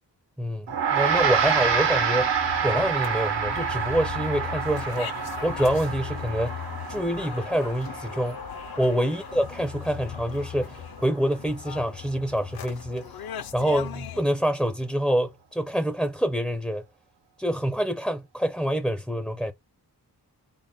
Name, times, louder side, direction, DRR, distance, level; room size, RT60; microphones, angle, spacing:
voice 1, 0.4-5.1 5.4-6.6 6.9-8.4 8.8-13.1 13.5-16.8 17.4-19.5, equal, ahead, 0.4 m, -26 dB
Gong, 0.7-10.3, right 7 dB, 85° right, 1.0 m, -28 dB
sound 1, 0.9-14.2, left 10 dB, 60° left, 0.5 m, -38 dB
3.7 x 2.1 x 3.6 m
wide cardioid pair, 95°, 42 cm